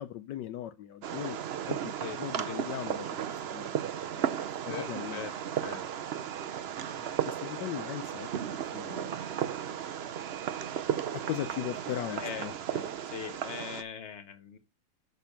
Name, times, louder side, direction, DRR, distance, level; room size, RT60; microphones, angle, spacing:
voice 1, 0.0-1.4 1.7-3.2 3.5-3.8 4.0-5.2 6.9-9.3 11.1-12.5, left 12 dB, 75° left, 1.2 m, -39 dB
Fireworks, 1.0-13.8, right 9 dB, 85° right, 0.5 m, -35 dB
voice 2, 4.6-5.8 12.1-14.6, left 8 dB, 40° left, 1.4 m, -41 dB
6.9 x 5.9 x 5.7 m
omnidirectional pair, 2.0 m